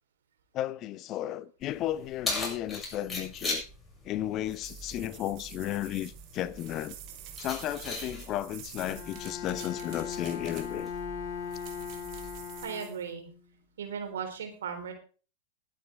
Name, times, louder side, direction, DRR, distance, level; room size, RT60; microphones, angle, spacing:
voice 1, 0.5-3.6 4.0-7.0 7.4-10.9, left 13 dB, 35° left, 0.7 m, -34 dB
Keys jangling, 1.6-12.6, left 2 dB, 10° left, 6.7 m, -41 dB
sound 1, 4.5-11.0 11.5-13.0, right 12 dB, 40° right, 2.4 m, -49 dB
Bowed string instrument, 8.9-13.4, left 7 dB, 50° left, 3.5 m, -39 dB
voice 2, 12.6-13.3 13.8-14.9, right 7 dB, 60° right, 3.9 m, -37 dB
21.0 x 9.2 x 3.6 m
figure-of-eight pair, 90°, 0 cm